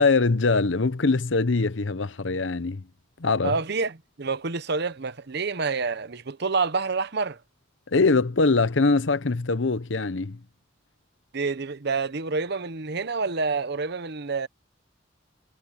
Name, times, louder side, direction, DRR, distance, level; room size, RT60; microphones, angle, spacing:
voice 1, 0.0-2.8 3.2-3.6 7.9-10.4, left 3 dB, 70° left, 0.9 m, -22 dB
voice 2, 3.4-7.4 11.3-14.5, right 4 dB, 60° right, 1.0 m, -28 dB
head